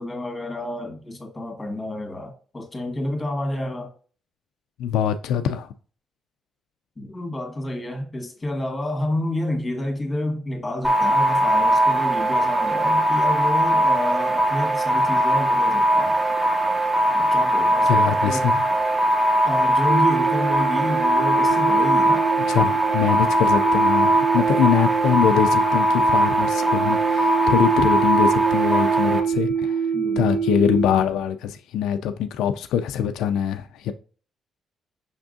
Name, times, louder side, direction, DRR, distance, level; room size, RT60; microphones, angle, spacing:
voice 1, 0.0-3.9 7.0-16.2 17.0-18.5 19.4-22.2 29.9-30.3, left 1 dB, 20° left, 1.7 m, -29 dB
voice 2, 4.8-5.7 17.9-18.6 22.4-29.9 30.2-33.9, left 9 dB, 85° left, 0.3 m, -23 dB
sound 1, 10.8-29.2, right 1 dB, ahead, 0.9 m, -20 dB
sound 2, 19.9-30.8, right 7 dB, 30° right, 1.1 m, -25 dB
5.7 x 3.5 x 2.6 m
cardioid pair, 90°, 0 cm